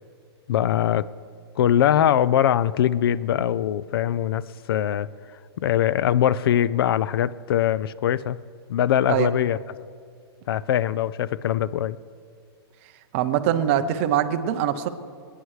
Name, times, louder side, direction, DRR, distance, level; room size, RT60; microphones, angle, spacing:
voice 1, 0.5-1.1 1.6-4.4 4.7-5.1 5.6-8.4 8.7-9.6 10.5-12.0, left 10 dB, 60° left, 19 dB, 0.4 m, -22 dB
voice 2, 13.1-14.9, right 10 dB, 30° right, 9 dB, 0.6 m, -23 dB
24.5 x 9.8 x 3.2 m, 2.2 s
hypercardioid pair, 170°, 14 cm